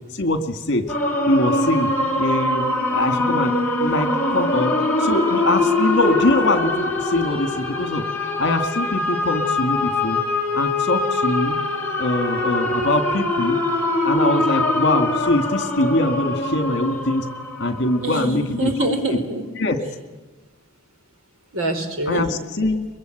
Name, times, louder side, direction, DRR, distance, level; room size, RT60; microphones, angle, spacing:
voice 1, 0.1-0.8 1.3-1.9 2.2-3.5 3.8-4.7 5.0-8.0 8.4-10.2 10.5-11.6 12.0-13.6 14.0-17.3 17.6-18.8 19.6-19.8 22.1-22.9, left 2 dB, 55° left, 9 dB, 2.1 m, -22 dB
sound 1, 0.9-18.6, left 2 dB, 10° left, 4.5 m, -23 dB
voice 2, 18.0-19.5 21.5-22.3, right 2 dB, 75° right, 5 dB, 4.7 m, -25 dB
23.5 x 22.5 x 9.2 m, 1.2 s
head